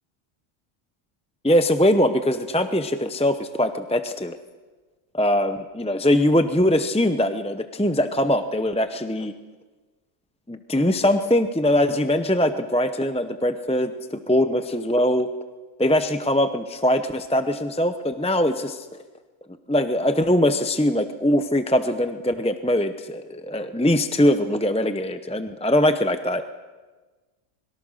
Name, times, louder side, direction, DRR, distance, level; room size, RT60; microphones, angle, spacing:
voice 1, 1.4-4.4 5.1-9.3 10.5-15.3 15.8-18.9 19.7-26.4, left 1 dB, 5° left, 8 dB, 0.5 m, -22 dB
25.0 x 22.0 x 6.5 m, 1.3 s
omnidirectional pair, 1.4 m